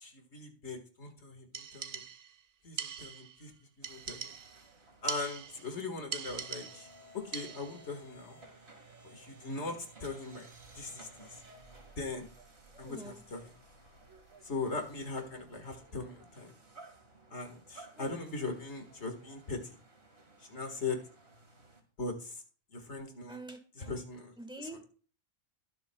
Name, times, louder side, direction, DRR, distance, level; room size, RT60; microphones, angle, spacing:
voice 1, 0.0-2.0 2.6-3.5 3.8-4.3 5.0-6.9 7.1-8.4 9.0-10.5 10.8-11.4 12.0-12.3 12.8-13.5 14.4-16.5 17.3-19.8 20.5-21.0 22.0-22.4 22.7-23.4 23.8-24.3, left 3 dB, 55° left, 4 dB, 2.0 m, -40 dB
sound 1, 1.5-2.4 2.8-3.4 3.8-4.7 5.1-5.7 6.1-7.0 7.3-7.8, right 7 dB, 75° right, 0.3 m, -41 dB
sound 2, 3.8-21.8, right 2 dB, 50° right, 2.3 m, -57 dB
voice 2, 12.7-13.2 17.9-18.1 23.3-24.0 24.4-24.8, right 1 dB, 5° right, 6 dB, 1.5 m, -46 dB
22.0 x 7.5 x 2.3 m, 0.40 s
omnidirectional pair, 1.4 m